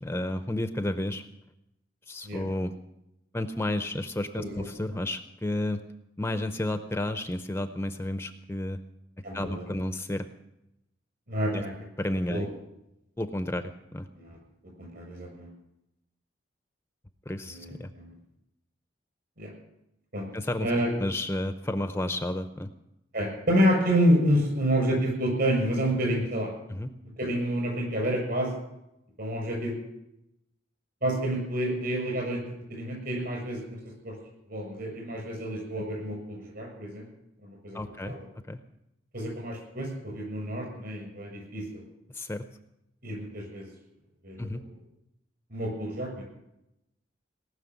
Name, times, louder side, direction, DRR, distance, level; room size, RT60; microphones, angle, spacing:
voice 1, 0.0-1.2 2.1-2.7 3.3-5.8 6.2-8.8 9.3-10.3 11.5-11.6 12.0-12.5 13.2-14.1 17.3-17.9 20.3-20.7 21.0-22.7 26.7-26.9 37.7-38.2 38.5-38.6 42.1-42.4 44.4-44.6, left 1 dB, 15° left, 9 dB, 0.6 m, -31 dB
voice 2, 9.2-9.6 11.3-11.7 12.3-12.4 14.2-14.4 14.8-15.5 17.4-18.1 19.4-19.5 20.1-20.3 20.6-20.9 23.1-26.5 27.2-28.5 29.2-29.8 31.0-33.8 34.0-34.1 34.5-37.0 37.4-37.8 38.0-38.3 39.1-41.8 43.0-43.7 44.2-44.7 45.5-46.2, equal, 55° right, 0 dB, 7.0 m, -28 dB
19.0 x 6.5 x 9.5 m, 0.86 s
head